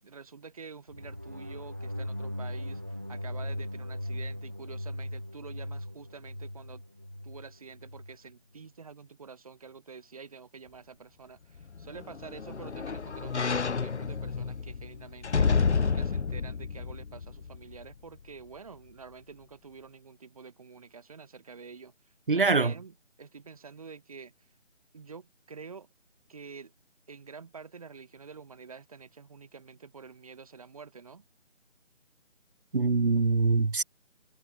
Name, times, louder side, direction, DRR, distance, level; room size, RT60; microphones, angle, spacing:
voice 1, 0.0-6.8 7.2-21.9 22.3-24.3 24.9-25.9 26.3-26.7 27.1-31.2, right 5 dB, 30° right, 7.6 m, -48 dB
sound 1, 0.9-8.2, left 1 dB, 10° right, 1.2 m, -38 dB
sound 2, 11.6-17.9 18.4-18.5, left 5 dB, 60° left, 0.9 m, -30 dB
voice 2, 22.3-22.7 32.7-33.8, right 4 dB, 45° right, 2.4 m, -24 dB
figure-of-eight pair, 175°, 38 cm